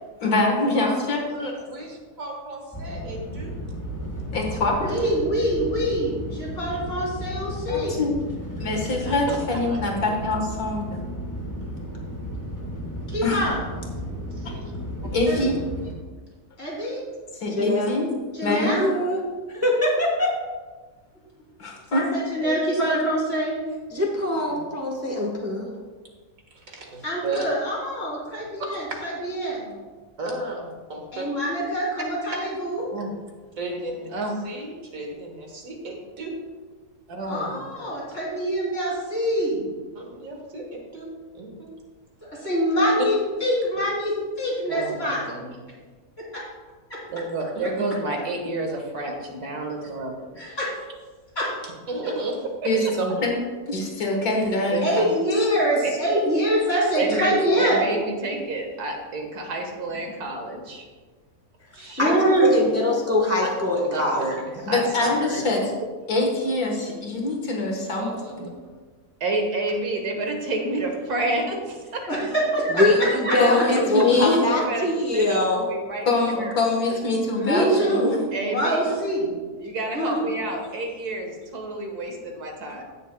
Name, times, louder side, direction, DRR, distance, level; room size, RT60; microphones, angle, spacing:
voice 1, 0.2-1.5 4.3-4.9 7.7-8.2 8.6-11.1 13.2-13.4 15.1-15.6 17.3-18.1 18.4-18.8 21.6-22.0 52.6-53.3 53.7-55.1 61.8-61.9 64.7-65.6 66.1-68.1 68.4-68.5 73.4-74.4 76.1-78.2, left 2 dB, 75° left, 0 dB, 1.9 m, -24 dB
voice 2, 0.8-3.5 4.9-5.1 9.1-9.8 14.3-14.7 22.4-22.6 24.5-24.7 26.5-27.5 30.2-31.2 33.6-34.1 34.4-36.3 40.0-41.1 41.3-41.7 43.7-43.8 47.6-47.7 51.6-52.4 52.8-53.1 63.8-63.9 68.0-68.5, right 2 dB, 60° right, 1 dB, 1.8 m, -35 dB
sound 1, 2.7-15.9, equal, 15° left, 1.5 m, -34 dB
voice 3, 4.8-8.0 13.1-13.6 15.3-15.5 16.6-17.0 18.3-18.9 21.9-23.6 27.0-29.7 31.1-32.9 37.3-39.6 42.3-45.3 46.3-46.4 46.9-47.0 50.4-50.7 51.3-51.5 54.8-57.9 62.0-62.5 72.1-73.6 77.3-79.3 79.9-80.3, equal, 40° left, -6 dB, 3.3 m, -24 dB
voice 4, 17.5-18.1 18.5-19.2 19.5-20.4 23.9-25.7 62.0-62.1 62.4-64.3 72.7-75.7, left 2 dB, 10° right, -1 dB, 1.1 m, -23 dB
voice 5, 37.1-37.9 44.7-45.5 47.1-50.3 54.7-54.8 56.1-56.2 57.0-60.9 61.7-62.0 63.4-63.5 63.9-65.4 69.2-72.3 72.7-72.8 74.5-76.1 76.4-76.6 78.3-78.9 79.6-82.8, right 2 dB, 90° right, 2 dB, 1.9 m, -30 dB
16.0 x 6.6 x 2.3 m, 1.4 s
omnidirectional pair, 1.6 m